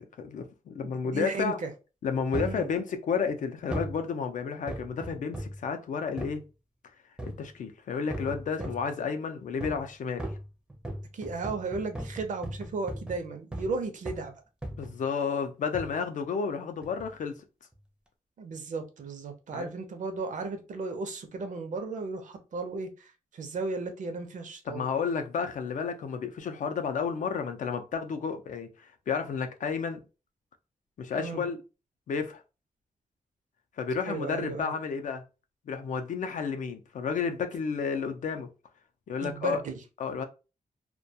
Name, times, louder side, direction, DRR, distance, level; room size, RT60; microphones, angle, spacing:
voice 1, 0.0-1.6 2.0-6.4 7.2-10.3 14.8-17.3 19.5-19.7 24.7-30.0 31.0-31.6 32.1-32.4 33.8-35.2 35.7-38.5 39.1-39.6 40.0-40.2, left 6 dB, 70° left, 0.4 m, -31 dB
voice 2, 0.8-1.7 2.3-2.7 8.6-8.7 11.1-14.3 18.4-24.9 31.2-31.4 34.0-34.7 39.2-39.7, right 4 dB, 70° right, 0.5 m, -35 dB
sound 1, 2.3-2.6 3.7-4.0 4.7-5.6 6.2-6.4 7.2-7.5 8.1-8.9 9.6-9.9 10.2-13.8 14.0-14.3 14.6-15.0 15.7-16.0 16.8-17.1 17.7-17.8, right 1 dB, 5° right, 0.4 m, -37 dB
2.2 x 2.2 x 2.6 m
wide cardioid pair, 165°, 13 cm